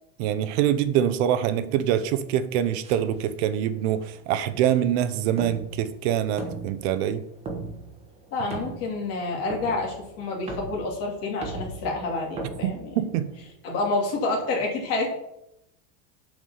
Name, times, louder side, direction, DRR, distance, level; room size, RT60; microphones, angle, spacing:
voice 1, 0.2-7.2 12.6-13.3, right 10 dB, 55° right, 12 dB, 0.8 m, -25 dB
sound 1, 2.8-13.5, right 3 dB, 15° right, 1.1 m, -40 dB
voice 2, 8.3-12.9 13.6-15.2, left 3 dB, 40° left, -1 dB, 2.6 m, -28 dB
7.4 x 4.7 x 7.0 m, 0.80 s
cardioid pair, 175°, 38 cm